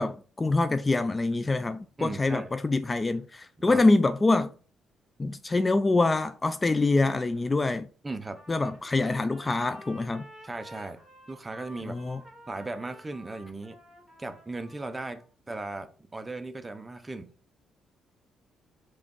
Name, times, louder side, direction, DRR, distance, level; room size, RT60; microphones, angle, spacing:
voice 1, 0.0-4.5 5.2-7.9 8.5-10.3 11.8-12.2, left 3 dB, 25° left, 0.4 m, -25 dB
voice 2, 2.0-2.5 3.7-3.9 8.0-8.4 10.4-11.0 11.3-12.0 12.5-13.8 14.2-17.3, right 2 dB, 20° right, 0.8 m, -37 dB
Trumpet, 8.3-15.3, equal, 5° left, 3.0 m, -51 dB
5.0 x 3.7 x 5.3 m
cardioid pair, 90°, 0 cm